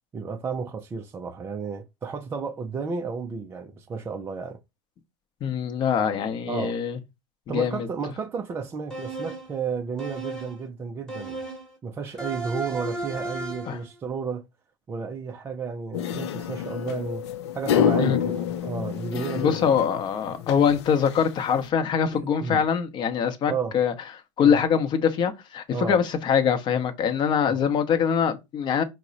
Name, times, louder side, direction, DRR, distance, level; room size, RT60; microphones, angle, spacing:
voice 1, 0.1-4.6 6.0-6.1 6.5-6.8 7.5-11.4 11.8-14.5 14.9-17.3 17.5-19.7 22.1-22.6 23.5-23.8 24.4-24.6 25.7-26.0 27.4-27.6, right 5 dB, 15° right, 0.3 m, -32 dB
voice 2, 5.4-7.0 7.5-7.9 13.7-13.8 18.0-18.2 19.4-23.9 24.4-28.8, left 7 dB, 30° left, 0.7 m, -23 dB
sound 1, 8.9-9.6 10.0-10.6 11.1-11.7 12.2-13.8, right 2 dB, 5° left, 1.0 m, -34 dB
sound 2, 15.9-21.7, left 9 dB, 70° left, 0.5 m, -28 dB
4.5 x 2.1 x 3.9 m
hypercardioid pair, 125°, 15 cm